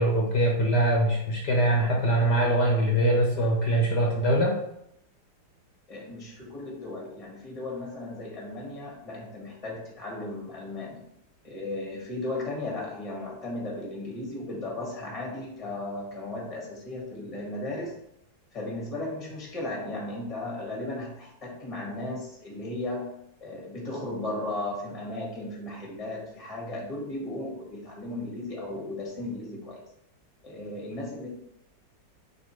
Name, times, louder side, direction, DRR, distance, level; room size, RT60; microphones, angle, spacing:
voice 1, 0.0-4.5, right 1 dB, 60° left, -2 dB, 1.8 m, -23 dB
voice 2, 5.9-11.0 11.4-18.0 18.5-23.1 23.4-29.8 30.4-31.3, left 2 dB, 15° left, -2 dB, 2.0 m, -35 dB
7.1 x 5.3 x 3.3 m, 0.77 s
omnidirectional pair, 2.1 m